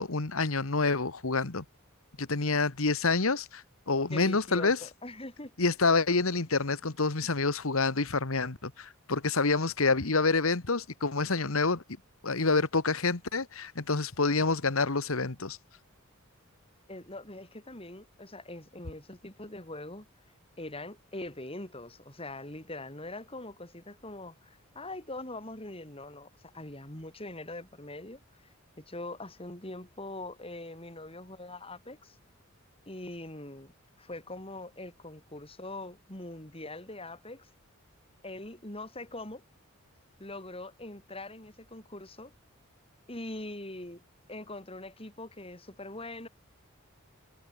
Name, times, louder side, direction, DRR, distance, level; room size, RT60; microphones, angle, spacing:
voice 1, 0.0-1.6 2.2-4.8 5.6-11.8 12.2-15.6, left 3 dB, 80° left, 1.6 m, -27 dB
voice 2, 4.1-5.5 16.9-20.1 20.6-28.5 28.8-32.2 32.9-33.7 34.0-37.5 38.2-39.4 40.2-42.3 43.1-44.0 44.3-46.3, left 2 dB, 25° left, 6.7 m, -42 dB
head